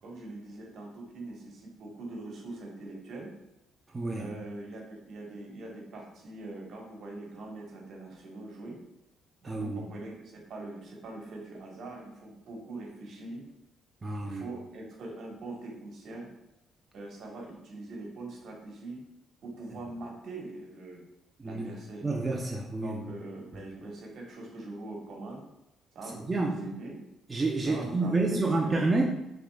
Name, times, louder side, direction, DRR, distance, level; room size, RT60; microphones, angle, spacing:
voice 1, 0.0-3.3 4.1-8.8 9.4-13.4 14.2-16.3 16.9-19.0 19.4-21.0 21.4-22.1 22.8-25.4 25.9-26.9 27.6-28.8, right 2 dB, 65° right, -1 dB, 1.5 m, -42 dB
voice 2, 3.9-4.3 9.4-9.8 14.0-14.5 21.4-21.7 22.0-23.0 26.3-26.7 27.3-29.1, right 2 dB, 25° right, -1 dB, 0.7 m, -29 dB
5.9 x 3.8 x 2.3 m, 0.92 s
supercardioid pair, 70°, 0 cm